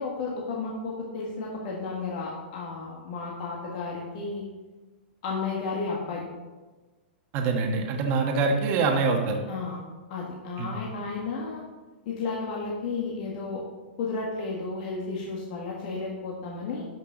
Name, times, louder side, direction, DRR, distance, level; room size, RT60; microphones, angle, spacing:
voice 1, 0.0-4.4 5.2-6.2 9.5-9.8 10.1-11.6 12.0-13.6 14.0-16.9, left 4 dB, 45° left, -3 dB, 1.6 m, -33 dB
voice 2, 7.3-9.4 10.6-10.8, right 4 dB, 30° right, 3 dB, 1.3 m, -25 dB
12.0 x 5.9 x 3.9 m, 1.3 s
hypercardioid pair, 155°, 6 cm